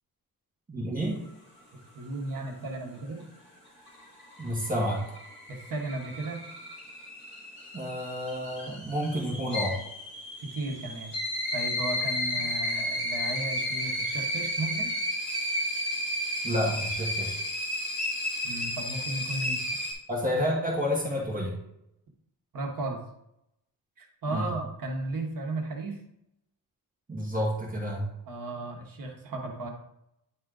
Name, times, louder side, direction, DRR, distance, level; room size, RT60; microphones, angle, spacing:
voice 1, 0.7-1.2 4.4-5.0 7.7-9.8 16.4-17.4 20.1-21.5 24.3-24.5 27.1-28.1, equal, 20° right, -4 dB, 1.6 m, -29 dB
voice 2, 1.7-3.2 5.5-6.4 10.4-11.1 11.5-14.9 18.4-19.6 22.5-23.0 24.0-26.0 28.3-29.7, right 2 dB, 60° right, 1 dB, 1.3 m, -35 dB
sound 1, 3.7-19.9, left 1 dB, 30° left, 3.2 m, -33 dB
9.8 x 4.3 x 3.8 m, 0.80 s
wide cardioid pair, 170°, 38 cm